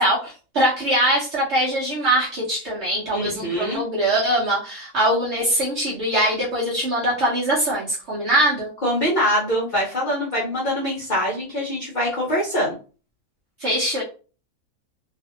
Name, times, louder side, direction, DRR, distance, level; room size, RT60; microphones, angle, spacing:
voice 1, 0.0-8.7 13.6-14.0, right 1 dB, 55° right, -6 dB, 1.0 m, -22 dB
voice 2, 3.1-3.8 8.8-12.7, equal, 45° left, -5 dB, 0.7 m, -24 dB
2.7 x 2.5 x 2.4 m, 0.36 s
omnidirectional pair, 1.5 m